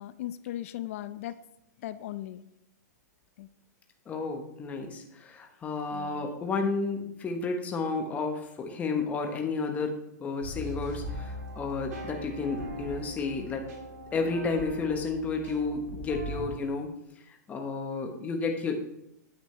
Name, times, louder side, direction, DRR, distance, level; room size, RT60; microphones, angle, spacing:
voice 1, 0.0-1.4 1.8-2.4 3.4-3.5 5.9-6.3, left 13 dB, 50° left, 15 dB, 0.5 m, -38 dB
voice 2, 4.1-9.9 10.2-13.7 14.1-16.9 17.5-18.8, left 4 dB, 15° left, 3 dB, 1.1 m, -31 dB
sound 1, 10.4-16.4, equal, 65° right, 3.1 m, -40 dB
9.5 x 7.9 x 3.3 m, 0.82 s
hypercardioid pair, 150°, 10 cm